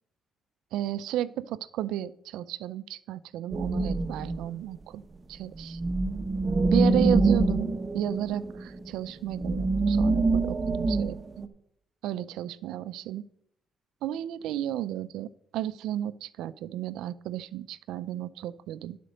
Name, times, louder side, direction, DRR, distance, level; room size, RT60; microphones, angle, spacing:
voice 1, 0.7-5.0 5.3-5.8 6.7-11.2 12.0-13.2 14.0-19.0, right 12 dB, 90° right, 16 dB, 0.4 m, -33 dB
sound 1, 3.5-4.5 5.6-11.5, right 3 dB, 30° right, 0.8 m, -25 dB
11.0 x 5.1 x 6.4 m, 0.73 s
cardioid pair, 90°, 0 cm